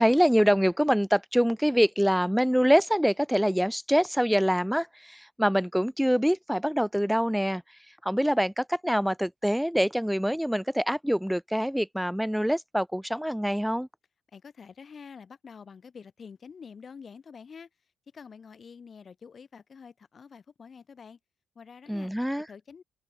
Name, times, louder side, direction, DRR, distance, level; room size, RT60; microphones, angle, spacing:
voice 1, 0.0-13.9 21.9-22.5, equal, ahead, 0.6 m, -25 dB
voice 2, 14.3-17.7 18.1-21.2 21.6-22.1 22.5-22.8, left 6 dB, 45° left, 3.8 m, -47 dB
cardioid pair, 90°, 0 cm